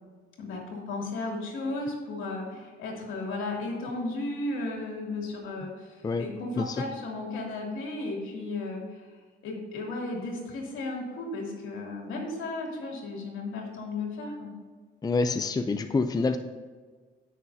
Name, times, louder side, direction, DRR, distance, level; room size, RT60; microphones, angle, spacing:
voice 1, 0.4-9.1 9.4-14.5, left 2 dB, 85° left, -1 dB, 2.7 m, -34 dB
voice 2, 15.0-16.4, left 3 dB, 20° left, 8 dB, 0.5 m, -27 dB
16.5 x 6.4 x 2.8 m, 1.5 s
cardioid pair, 90°, 20 cm